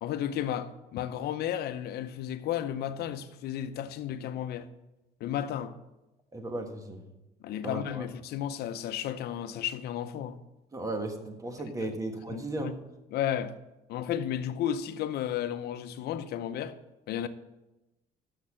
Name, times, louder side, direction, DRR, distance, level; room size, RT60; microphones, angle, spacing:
voice 1, 0.0-4.7 5.2-5.7 7.4-10.4 11.8-11.9 12.3-12.7 13.1-13.5 13.9-16.8 17.1-17.3, left 10 dB, 70° left, 0.7 m, -33 dB
voice 2, 6.3-7.0 7.6-8.0 10.7-12.7, right 2 dB, 20° right, 1.4 m, -35 dB
6.6 x 6.5 x 7.5 m
cardioid pair, 110°, 17 cm